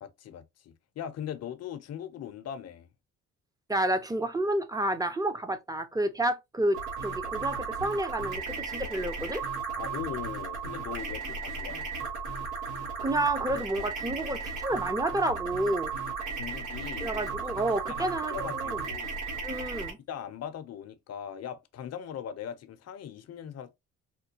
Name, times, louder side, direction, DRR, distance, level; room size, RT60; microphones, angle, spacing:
voice 1, 0.0-2.9 9.7-11.9 16.4-17.2 18.0-19.1 20.1-23.7, left 9 dB, 55° left, 0.7 m, -40 dB
voice 2, 3.7-9.4 13.0-15.9 17.0-18.8 19.4-20.0, right 1 dB, 10° right, 0.7 m, -30 dB
sound 1, 6.7-19.9, right 5 dB, 85° right, 1.6 m, -35 dB
4.3 x 2.2 x 2.8 m
cardioid pair, 90°, 30 cm